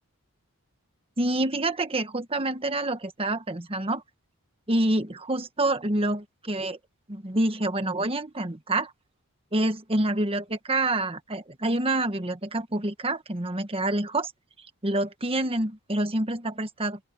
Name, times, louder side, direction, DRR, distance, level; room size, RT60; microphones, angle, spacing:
voice 1, 1.2-4.0 4.7-6.8 7.1-8.9 9.5-14.3 14.8-17.0, right 1 dB, 25° right, 1.3 m, -27 dB
open air
head